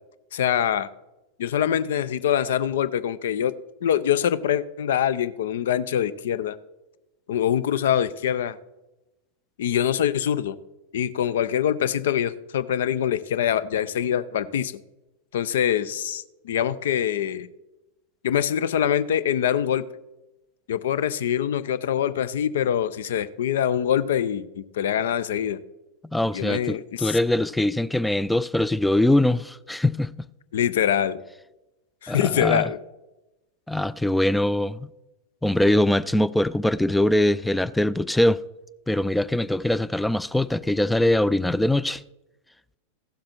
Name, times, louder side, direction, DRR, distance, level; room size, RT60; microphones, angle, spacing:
voice 1, 0.3-0.9 1.4-3.5 3.8-6.6 7.3-8.6 9.6-10.6 10.9-14.8 15.3-17.5 18.2-19.8 20.7-25.6 26.3-27.2 30.5-31.2 32.0-32.8, left 9 dB, 60° left, 0.5 m, -24 dB
voice 2, 26.1-30.1 32.1-32.7 33.7-34.9 35.4-38.4 38.9-42.0, left 1 dB, 5° left, 0.3 m, -22 dB
15.5 x 7.5 x 4.4 m
figure-of-eight pair, 90°, 0 cm